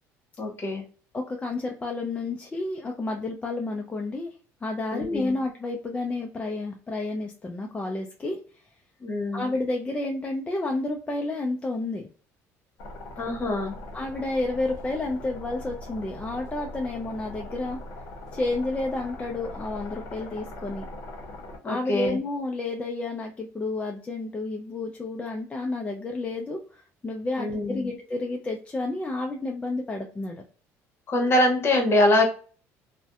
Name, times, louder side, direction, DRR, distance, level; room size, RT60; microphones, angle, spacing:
voice 1, 0.4-0.8 4.9-5.3 9.0-9.5 13.2-13.8 21.6-22.2 27.4-27.9 31.1-32.2, left 1 dB, 40° left, 3 dB, 1.0 m, -24 dB
voice 2, 1.1-4.3 4.6-8.4 9.3-12.1 13.9-17.8 18.3-20.8 21.6-30.4, left 2 dB, 20° left, 1 dB, 0.4 m, -30 dB
sound 1, 12.8-21.6, left 1 dB, 65° left, 0.7 m, -40 dB
2.6 x 2.1 x 2.3 m, 0.39 s
supercardioid pair, 95°, 7 cm